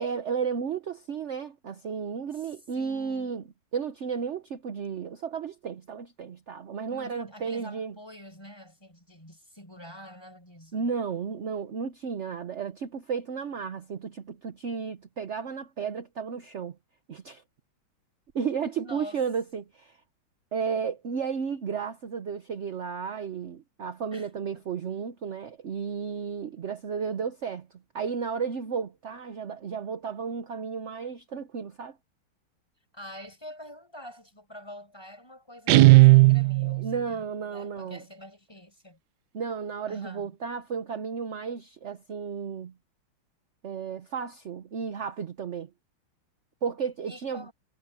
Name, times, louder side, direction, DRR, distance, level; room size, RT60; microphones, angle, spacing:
voice 1, 0.0-3.4 3.7-7.9 10.7-16.8 17.1-17.4 18.3-20.0 20.5-27.7 27.9-32.0 36.6-38.0 39.3-42.7 43.6-45.7 46.6-47.5, right 6 dB, 50° right, 0.8 m, -33 dB
voice 2, 2.3-3.3 6.9-10.9 18.8-19.2 24.1-24.6 32.9-39.0 39.9-40.3 47.1-47.5, equal, 10° left, 5.8 m, -46 dB
Guitar, 35.7-36.9, right 21 dB, 80° right, 0.9 m, -15 dB
omnidirectional pair, 2.3 m